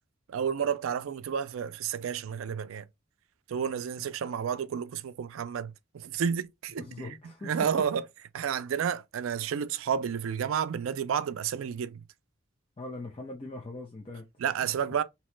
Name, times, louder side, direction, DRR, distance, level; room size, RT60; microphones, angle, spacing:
voice 1, 0.3-2.9 3.5-7.1 7.4-8.0 8.3-12.0 14.4-15.0, right 7 dB, 80° right, 0.4 m, -31 dB
voice 2, 6.8-7.5 12.8-14.2, left 2 dB, 25° left, 0.5 m, -41 dB
2.9 x 2.2 x 3.0 m
head